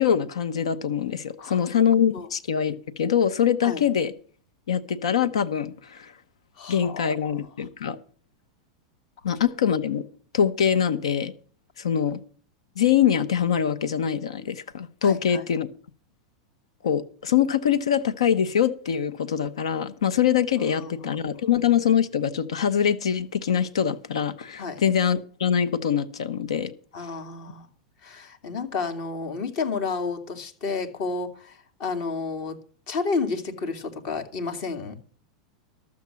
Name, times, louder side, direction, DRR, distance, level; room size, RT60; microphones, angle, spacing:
voice 1, 0.0-4.1 4.7-6.1 6.7-8.0 9.2-10.0 10.3-11.3 11.8-12.2 12.8-15.7 16.8-26.7, left 8 dB, 85° left, 0.9 m, -23 dB
voice 2, 6.6-7.3 15.0-15.4 20.6-21.2 24.6-24.8 26.9-27.7 28.0-32.6 32.9-35.0, left 4 dB, 60° left, 2.5 m, -31 dB
12.5 x 7.4 x 7.5 m
hypercardioid pair, 110°, 3 cm